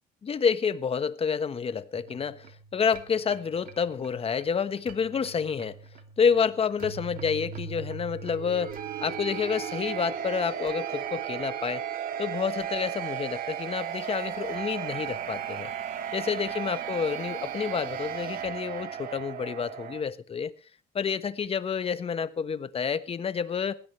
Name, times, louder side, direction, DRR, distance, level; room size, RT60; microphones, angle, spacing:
voice 1, 0.2-5.8 6.2-11.8 12.2-15.7 16.1-20.5 20.9-23.7, left 6 dB, 35° left, 1.3 m, -29 dB
sound 1, 1.9-20.0, right 9 dB, 55° right, 2.8 m, -36 dB
20.0 x 16.5 x 3.3 m
cardioid pair, 110°, 17 cm